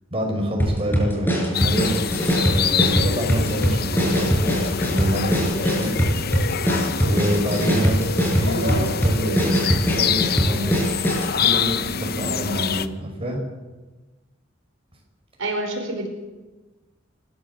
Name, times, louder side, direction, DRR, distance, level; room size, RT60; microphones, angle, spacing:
voice 1, 0.1-1.9 2.5-4.6 4.9-5.9 7.0-8.0 8.4-10.8 11.4-13.4, equal, 30° right, 0 dB, 5.8 m, -27 dB
sound 1, 0.6-11.3, equal, 10° left, 5.8 m, -22 dB
sound 2, 1.5-12.9, left 7 dB, 50° left, 0.9 m, -26 dB
voice 2, 8.5-8.9 15.4-16.1, right 2 dB, 85° right, 2 dB, 4.7 m, -28 dB
28.5 x 14.0 x 7.0 m, 1.2 s
head